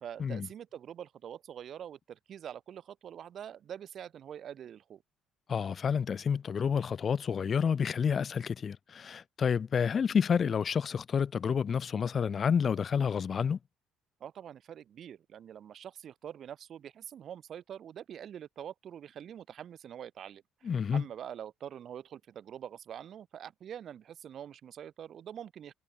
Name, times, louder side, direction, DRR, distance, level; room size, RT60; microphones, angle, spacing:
voice 1, 0.0-5.0 14.2-25.7, right 9 dB, 40° right, 0.4 m, -45 dB
voice 2, 5.5-13.6 20.6-21.0, left 6 dB, 25° left, 0.4 m, -29 dB
cardioid pair, 170°, 0 cm